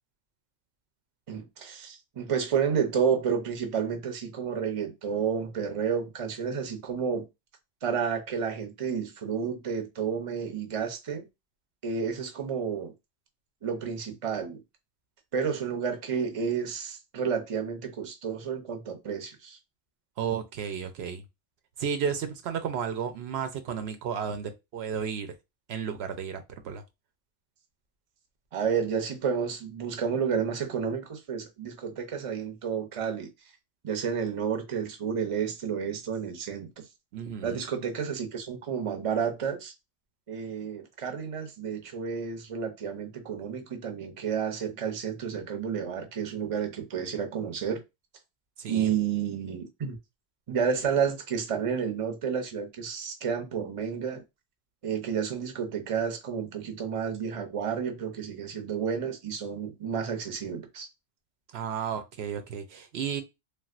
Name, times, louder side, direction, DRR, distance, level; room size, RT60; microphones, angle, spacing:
voice 1, 1.3-7.3 7.8-11.2 11.8-12.9 13.6-14.6 15.3-19.6 28.5-33.3 33.8-36.9 37.4-39.7 40.3-47.8 48.7-50.0 50.5-54.2 54.8-60.9, right 7 dB, 40° right, 0.6 m, -31 dB
voice 2, 20.2-21.2 21.8-25.3 25.7-26.8 37.1-37.6 48.6-48.9 61.5-63.2, right 7 dB, 80° right, 0.8 m, -33 dB
3.3 x 2.4 x 2.4 m
omnidirectional pair, 1.1 m